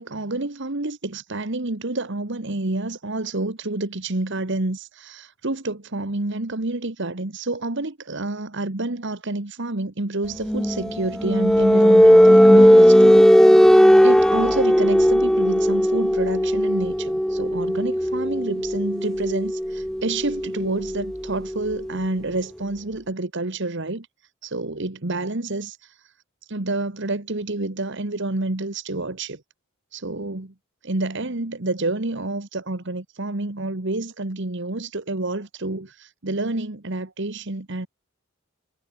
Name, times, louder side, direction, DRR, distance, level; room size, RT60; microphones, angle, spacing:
voice 1, 0.0-13.3 14.0-24.1 24.4-25.8 26.5-29.4 29.9-30.5 30.8-37.9, right 2 dB, 55° right, 1.6 m, -28 dB
sound 1, 10.4-22.0, equal, 5° left, 1.0 m, -16 dB
head